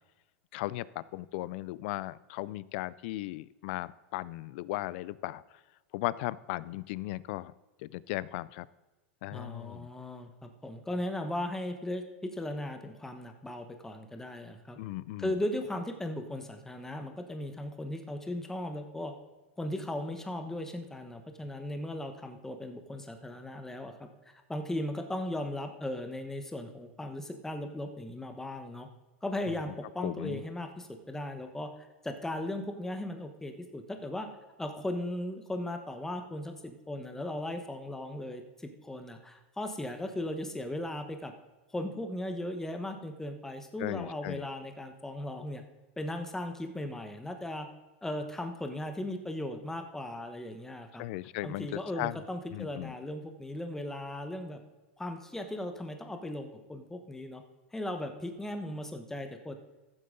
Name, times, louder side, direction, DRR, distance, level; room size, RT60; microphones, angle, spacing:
voice 1, 0.5-5.4 5.9-7.5 7.8-8.7 9.2-9.9 14.8-15.3 29.5-29.6 30.0-30.4 43.8-44.5 51.0-52.2 52.5-52.9, left 18 dB, 55° left, 20 dB, 0.4 m, -37 dB
voice 2, 9.3-14.8 15.2-19.1 19.6-24.1 24.5-28.9 29.2-31.7 32.0-34.3 34.6-41.3 41.7-45.6 46.0-47.7 48.0-51.1 51.4-54.6 55.0-57.4 57.7-59.6, left 1 dB, 5° left, 6 dB, 1.1 m, -37 dB
14.0 x 7.8 x 3.8 m, 1.2 s
hypercardioid pair, 125°, 7 cm